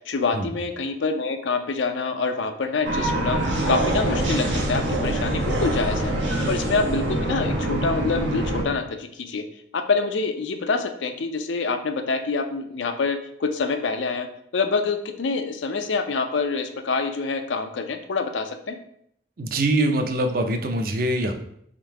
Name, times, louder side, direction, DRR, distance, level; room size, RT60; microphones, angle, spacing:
voice 1, 0.0-3.4 3.7-9.4 9.7-14.3 14.5-18.8, left 4 dB, 90° left, 7 dB, 0.5 m, -26 dB
sound 1, 2.8-8.6, right 1 dB, 85° right, 1.0 m, -24 dB
voice 2, 19.4-21.3, right 1 dB, 50° right, 5 dB, 0.5 m, -23 dB
3.7 x 2.7 x 4.6 m, 0.70 s
head